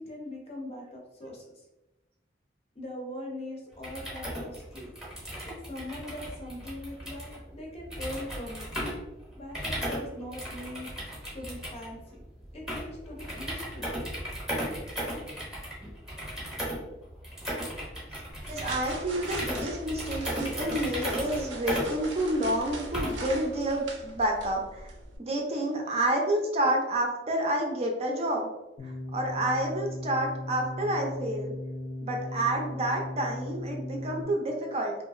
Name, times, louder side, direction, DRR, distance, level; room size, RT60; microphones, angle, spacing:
voice 1, 0.0-1.7 2.8-4.9 5.5-8.7 9.4-10.9 11.3-12.2 12.5-13.9, left 1 dB, 35° left, -1 dB, 0.6 m, -41 dB
sound 1, 3.7-23.4, equal, ahead, 0.7 m, -36 dB
sound 2, 18.3-25.2, right 3 dB, 85° right, 0.5 m, -41 dB
voice 2, 18.5-24.9 25.2-28.5 28.8-31.5 32.0-34.9, right 1 dB, 35° right, 1 dB, 0.4 m, -29 dB
sound 3, 28.8-34.2, left 1 dB, 75° left, 0.7 m, -37 dB
2.8 x 2.4 x 2.4 m, 0.99 s
head